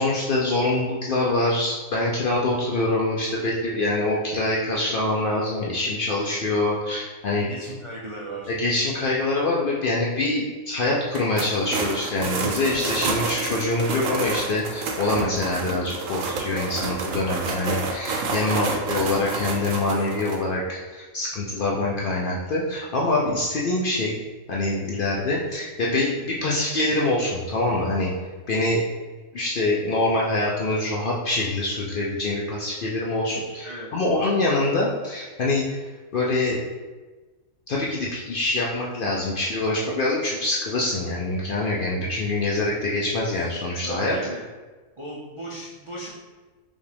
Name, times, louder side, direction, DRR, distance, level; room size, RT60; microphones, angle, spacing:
voice 1, 0.0-7.5 8.5-24.1 24.5-28.1 28.5-28.8 29.3-35.7 36.1-36.6 37.7-44.2, left 2 dB, 60° left, -4 dB, 0.5 m, -25 dB
voice 2, 7.5-8.5 18.5-18.8 33.6-33.9 43.3-43.5 43.8-44.5 45.0-46.1, right 1 dB, 50° right, -5 dB, 0.3 m, -36 dB
sound 1, 11.1-20.4, right 4 dB, 80° right, 1.0 m, -29 dB
5.2 x 2.4 x 3.3 m, 1.3 s
omnidirectional pair, 1.4 m